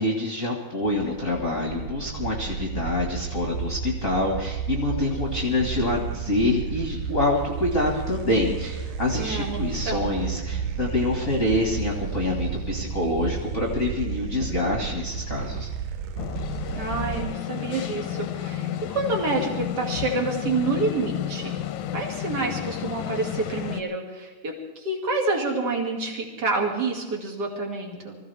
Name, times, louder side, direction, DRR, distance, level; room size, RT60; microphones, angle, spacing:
voice 1, 0.0-15.7, left 2 dB, 30° left, -1 dB, 1.9 m, -26 dB
sound 1, 0.8-17.3, right 6 dB, 80° right, 2.3 m, -32 dB
voice 2, 9.2-9.6 9.9-10.1 16.8-21.6 21.9-28.2, right 3 dB, 35° right, 0 dB, 2.8 m, -28 dB
sound 2, 16.2-23.8, left 11 dB, 75° left, 2.0 m, -32 dB
24.0 x 16.0 x 3.5 m, 1.3 s
omnidirectional pair, 3.6 m